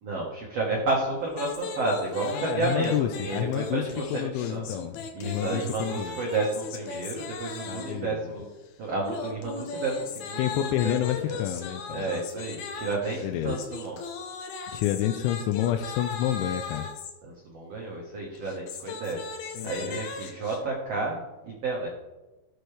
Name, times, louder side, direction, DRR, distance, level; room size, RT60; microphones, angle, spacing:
voice 1, 0.0-4.6 5.1-8.5 8.8-11.4 11.9-14.0 17.2-19.2 19.6-21.2 21.4-21.9, right 3 dB, 85° right, -2 dB, 1.4 m, -31 dB
sound 1, 1.3-8.1 9.0-17.1 18.4-20.6, left 5 dB, 70° left, 2.5 m, -38 dB
voice 2, 2.3-3.8 4.1-6.2 7.7-8.3 10.4-12.2 13.2-13.6 14.7-16.9 19.5-20.0, left 12 dB, 85° left, 6 dB, 2.9 m, -29 dB
17.5 x 7.9 x 3.4 m, 1.1 s
omnidirectional pair, 5.5 m